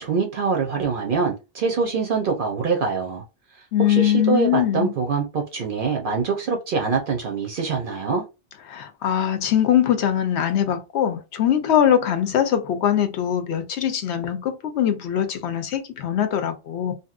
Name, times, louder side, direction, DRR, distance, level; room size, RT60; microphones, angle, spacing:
voice 1, 0.0-3.2 3.9-8.2, right 5 dB, 60° right, 0.7 m, -24 dB
voice 2, 3.7-4.9 8.7-16.9, left 10 dB, 80° left, 0.9 m, -22 dB
2.8 x 2.6 x 2.4 m
omnidirectional pair, 1.1 m